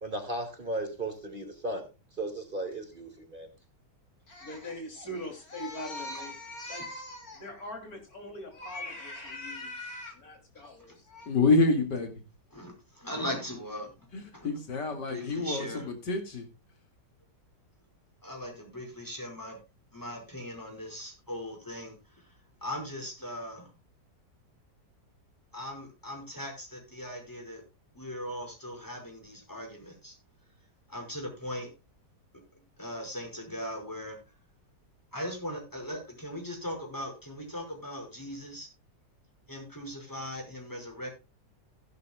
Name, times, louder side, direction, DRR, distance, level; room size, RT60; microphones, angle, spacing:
voice 1, 0.0-1.9 2.2-3.5, right 2 dB, 30° right, 5 dB, 2.4 m, -35 dB
voice 2, 4.3-11.3, left 1 dB, 60° left, 4 dB, 3.6 m, -40 dB
voice 3, 11.3-12.1 14.4-16.5, left 3 dB, 85° left, 6 dB, 3.0 m, -27 dB
voice 4, 12.5-14.1 14.3-14.5 15.0-15.9 18.2-19.6 19.9-22.3 22.6-23.7 25.5-27.6 27.9-30.1 30.9-31.7 32.8-34.2 35.1-38.7 39.5-41.1, left 1 dB, 10° left, 2 dB, 5.4 m, -39 dB
16.0 x 11.0 x 2.3 m, 0.28 s
omnidirectional pair, 1.8 m